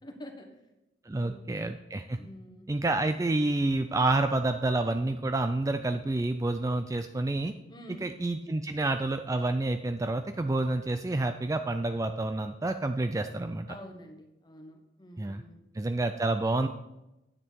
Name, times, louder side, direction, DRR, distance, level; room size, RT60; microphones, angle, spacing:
voice 1, 0.0-0.5 1.1-1.5 2.1-2.7 7.7-8.1 13.7-15.6, equal, 25° left, 4 dB, 1.3 m, -47 dB
voice 2, 1.1-2.2 2.7-7.5 8.0-13.7 15.2-15.4 15.7-16.7, right 2 dB, 20° right, 8 dB, 0.3 m, -29 dB
9.8 x 7.5 x 4.6 m, 0.94 s
head